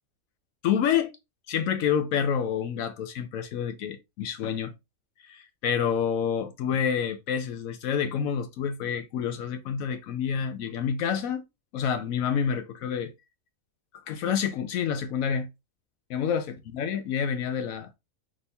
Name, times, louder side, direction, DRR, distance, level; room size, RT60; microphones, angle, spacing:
voice 1, 0.6-1.1 1.5-4.7 5.3-11.4 11.7-13.1 14.1-15.5 16.1-17.9, left 7 dB, 80° left, 1.0 m, -28 dB
4.2 x 3.0 x 3.3 m
omnidirectional pair, 1.4 m